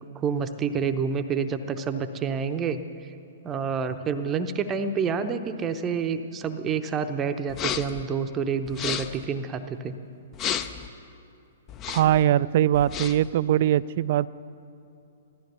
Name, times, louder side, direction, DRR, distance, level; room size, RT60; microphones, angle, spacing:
voice 1, 0.1-2.8 3.4-9.9, right 6 dB, 20° right, 8 dB, 0.7 m, -28 dB
sound 1, 7.5-8.0 8.7-9.2 10.3-10.9 11.7-12.2 12.7-13.3, left 9 dB, 25° left, 0.6 m, -32 dB
voice 2, 11.9-14.3, right 12 dB, 50° right, 18 dB, 0.3 m, -21 dB
15.5 x 13.0 x 6.9 m, 2.6 s
figure-of-eight pair, 115°, 0 cm